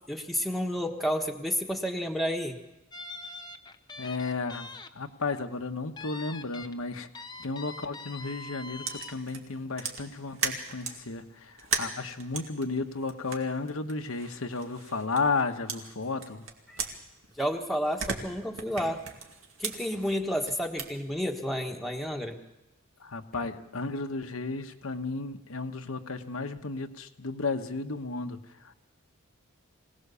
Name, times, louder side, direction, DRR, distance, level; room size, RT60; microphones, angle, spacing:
voice 1, 0.1-2.6 16.7-17.0 17.4-19.0 19.6-22.4, equal, ahead, 1 dB, 1.4 m, -31 dB
sound 1, 2.9-4.9 5.3-5.4 6.0-6.7 7.1-9.1, left 3 dB, 20° left, 0.9 m, -43 dB
voice 2, 4.0-4.7 4.9-16.4 23.0-28.7, left 3 dB, 85° left, 5 dB, 1.3 m, -33 dB
sound 2, 8.8-11.1 11.6-15.4 15.7-17.5 17.8-20.9, right 5 dB, 70° right, 2.4 m, -37 dB
24.5 x 18.0 x 7.0 m, 0.91 s
head